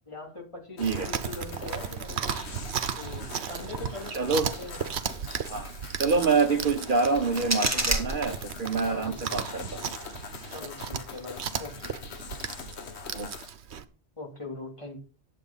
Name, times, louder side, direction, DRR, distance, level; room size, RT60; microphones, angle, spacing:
voice 1, 0.1-2.4 2.9-4.8 8.8-9.1 10.5-11.9 14.2-15.0, left 2 dB, 30° left, -2 dB, 3.2 m, -42 dB
sound 1, 0.8-13.5, left 6 dB, 80° left, 1.3 m, -44 dB
Chewing mastication, 0.8-13.8, right 7 dB, 85° right, 1.1 m, -35 dB
voice 2, 4.1-4.5 5.5-5.7 6.0-9.8 13.1-13.3, right 4 dB, 50° right, 7 dB, 1.2 m, -26 dB
sound 2, 6.9-8.9, right 1 dB, 15° right, 1.6 m, -30 dB
10.5 x 7.6 x 5.6 m, 0.38 s
omnidirectional pair, 1.1 m